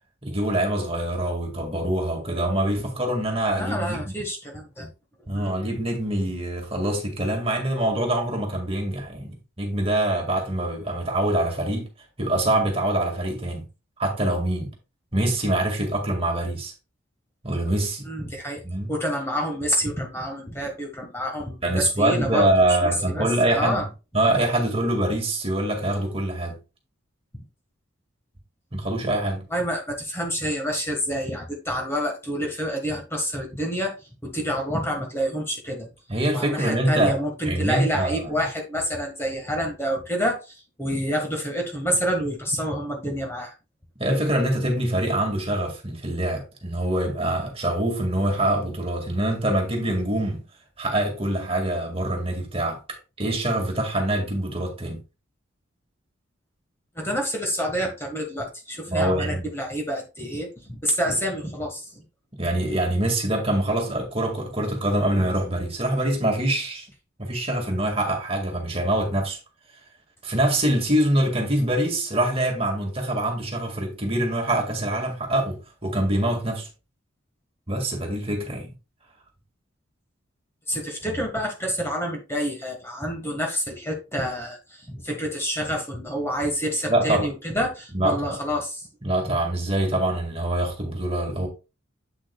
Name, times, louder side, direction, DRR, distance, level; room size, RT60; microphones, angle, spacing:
voice 1, 0.2-4.1 5.3-11.9 12.2-13.6 14.0-14.7 15.1-16.7 17.4-18.1 18.6-18.9 21.6-23.8 24.1-26.6 28.7-29.5 36.1-37.2 37.5-38.4 44.0-50.4 50.8-55.0 58.9-59.5 62.4-66.9 67.2-69.4 70.2-76.7 77.7-78.7 81.1-81.2 86.9-87.3 87.9-88.4 89.0-91.5, right 1 dB, 30° right, 1.8 m, -24 dB
voice 2, 3.6-4.9 5.3-5.5 18.0-18.6 18.9-23.9 27.3-27.4 29.5-35.9 36.3-43.5 56.9-62.0 80.7-88.9, equal, 10° left, 1.4 m, -28 dB
8.1 x 7.5 x 2.2 m
head